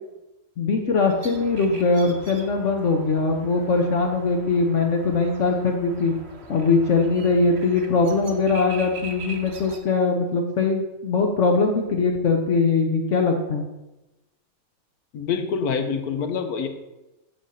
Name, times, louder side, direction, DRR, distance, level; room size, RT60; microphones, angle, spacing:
voice 1, 0.6-6.1 6.5-13.6, left 4 dB, 60° left, 2 dB, 1.0 m, -21 dB
sound 1, 1.1-9.8, right 3 dB, 50° right, 1.1 m, -42 dB
voice 2, 15.1-16.7, left 6 dB, 85° left, 7 dB, 1.3 m, -26 dB
8.1 x 4.1 x 6.3 m, 0.99 s
omnidirectional pair, 1.5 m